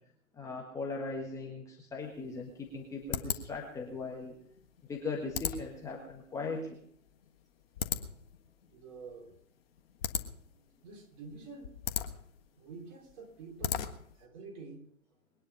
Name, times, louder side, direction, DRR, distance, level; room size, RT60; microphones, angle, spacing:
voice 1, 0.3-4.4 4.9-6.8, left 3 dB, 10° left, 1.6 m, -39 dB
sound 1, 2.0-14.3, left 8 dB, 45° left, 1.6 m, -40 dB
voice 2, 8.7-9.3 10.1-10.2 10.5-11.7 12.6-14.9, right 4 dB, 30° right, 4.3 m, -48 dB
22.0 x 10.0 x 5.5 m
figure-of-eight pair, 135°, 42 cm